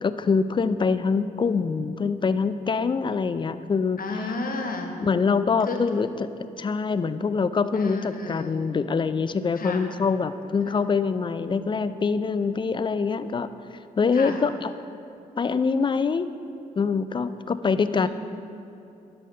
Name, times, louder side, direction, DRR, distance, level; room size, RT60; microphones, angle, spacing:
voice 1, 0.0-4.0 5.0-13.5 14.0-14.7 15.4-16.3 16.8-18.1, left 5 dB, 25° left, 12 dB, 0.4 m, -24 dB
voice 2, 4.0-4.9 5.6-5.8 7.7-8.5 9.6-9.8 10.6-10.8 14.1-14.4 17.9-18.1, left 3 dB, 50° left, 3 dB, 1.1 m, -32 dB
12.0 x 4.2 x 3.9 m, 2.9 s
hypercardioid pair, 40°, 19 cm